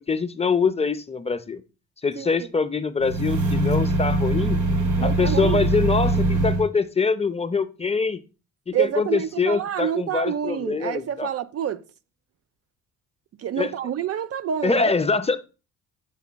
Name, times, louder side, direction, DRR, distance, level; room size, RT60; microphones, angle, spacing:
voice 1, 0.1-1.6 2.0-4.6 5.0-8.2 8.7-11.3 13.6-13.7 14.6-15.4, left 4 dB, 20° left, 0.5 m, -24 dB
voice 2, 2.2-2.5 5.0-5.6 8.7-11.8 13.4-15.0, right 9 dB, 50° right, 0.5 m, -28 dB
sound 1, 3.0-6.7, right 2 dB, 75° right, 1.5 m, -22 dB
7.0 x 6.9 x 2.2 m
cardioid pair, 90°, 30 cm